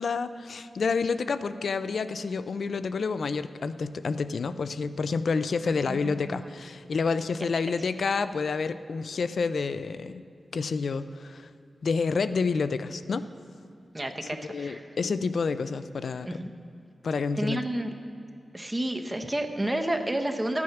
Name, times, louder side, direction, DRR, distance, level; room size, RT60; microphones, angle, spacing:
voice 1, 0.0-10.2 10.5-11.5 11.8-13.3 14.5-16.3 17.0-17.6, left 4 dB, 60° left, 12 dB, 0.4 m, -29 dB
voice 2, 5.7-6.5 13.9-14.9 16.3-16.5 17.3-17.9 18.5-20.6, right 1 dB, 15° right, 5 dB, 0.8 m, -31 dB
14.0 x 9.6 x 5.8 m, 2.6 s
wide cardioid pair, 180°, 0 cm